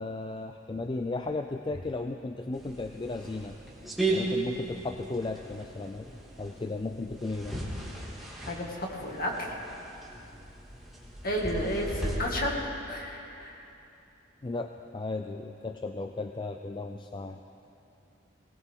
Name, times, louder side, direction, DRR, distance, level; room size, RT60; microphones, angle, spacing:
voice 1, 0.0-3.6 4.1-6.1 6.4-7.6 14.4-17.4, left 3 dB, 25° left, 6 dB, 0.4 m, -35 dB
sound 1, 2.5-12.1, right 2 dB, ahead, 2.2 m, -36 dB
voice 2, 8.5-9.5 11.2-12.6 12.9-13.6, equal, 45° left, -1 dB, 2.1 m, -32 dB
20.0 x 18.0 x 3.7 m, 2.8 s
head